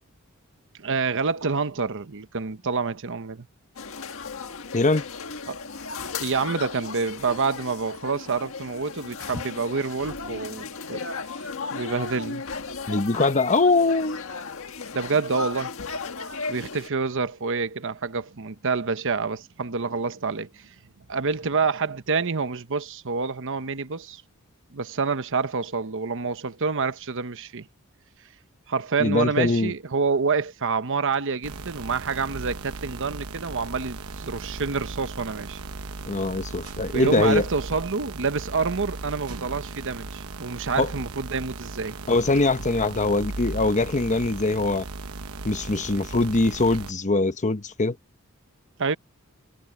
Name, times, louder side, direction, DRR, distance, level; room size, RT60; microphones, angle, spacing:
voice 1, 0.8-3.5 5.5-5.6 6.2-11.1 11.5-12.4 14.9-15.7 16.5-20.7 21.1-24.2 24.7-27.7 28.7-35.6 36.9-42.0 48.8-49.0, right 4 dB, 60° right, 1.0 m, -27 dB
sound 1, 3.7-16.9, left 4 dB, 65° left, 1.7 m, -35 dB
voice 2, 4.7-5.0 12.9-14.2 29.0-29.7 36.1-37.4 40.8-40.9 42.1-44.9 45.4-48.0, left 3 dB, 35° left, 1.1 m, -22 dB
sound 2, 31.4-46.9, right 3 dB, 85° right, 1.1 m, -37 dB
head